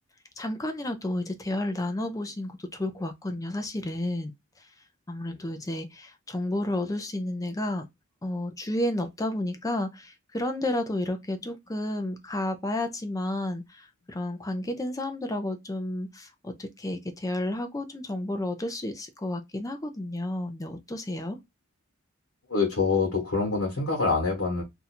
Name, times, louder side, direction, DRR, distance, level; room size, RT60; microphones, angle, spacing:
voice 1, 0.4-4.3 4.6-4.7 5.1-7.8 8.2-21.4, left 1 dB, 15° left, 0.5 m, -31 dB
voice 2, 22.5-24.6, left 4 dB, 65° left, 1.2 m, -25 dB
2.7 x 2.4 x 4.2 m
head